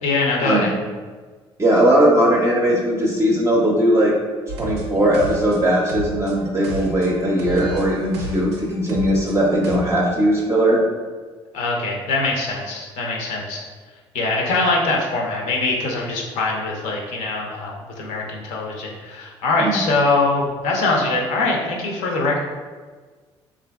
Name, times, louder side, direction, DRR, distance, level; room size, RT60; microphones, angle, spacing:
voice 1, 0.0-0.7 11.5-13.6 14.1-22.4, left 3 dB, 65° left, -1 dB, 0.6 m, -22 dB
voice 2, 1.6-4.1 4.6-10.8 19.6-19.8, right 1 dB, 20° right, -3 dB, 0.5 m, -18 dB
sound 1, 4.5-9.8, right 1 dB, 80° right, 0.4 m, -33 dB
3.3 x 2.5 x 2.2 m, 1.4 s
hypercardioid pair, 55°, 13 cm